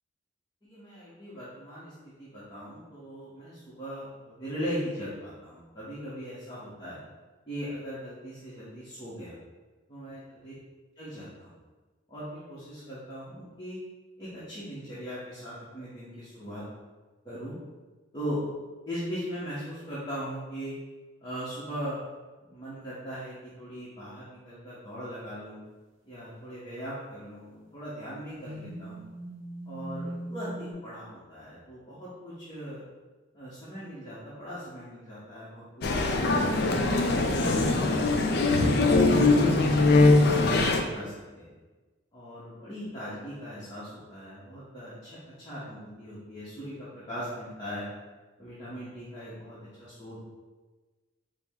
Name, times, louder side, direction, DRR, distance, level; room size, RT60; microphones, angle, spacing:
voice 1, 0.6-7.0 7.4-9.4 9.9-10.5 11.0-11.5 12.1-13.8 14.2-16.6 17.2-17.6 18.1-18.4 18.9-20.7 21.2-22.0 22.4-25.6 26.1-29.1 29.7-32.8 33.3-35.7 36.0-36.7 37.4-41.5 42.1-47.9 48.4-50.2, equal, 20° left, -10 dB, 0.8 m, -39 dB
sound 1, 28.4-30.7, right 1 dB, 80° right, 0.5 m, -39 dB
Male speech man speaking, 35.8-40.8, left 2 dB, 55° left, 0.4 m, -22 dB
4.6 x 2.0 x 3.5 m, 1.3 s
head